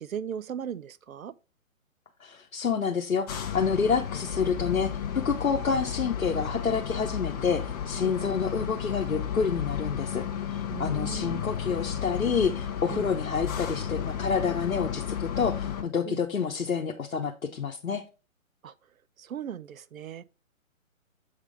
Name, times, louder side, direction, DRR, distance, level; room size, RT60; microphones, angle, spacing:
voice 1, 0.0-1.3 8.0-8.2 10.7-11.4 12.9-13.1 16.1-16.2 18.6-18.7 19.2-20.2, right 8 dB, 75° right, 0.7 m, -37 dB
voice 2, 2.2-18.0, left 6 dB, 90° left, 1.0 m, -28 dB
sound 1, 3.3-15.8, left 8 dB, 30° left, 1.1 m, -33 dB
7.3 x 3.7 x 4.8 m
figure-of-eight pair, 140°, 41 cm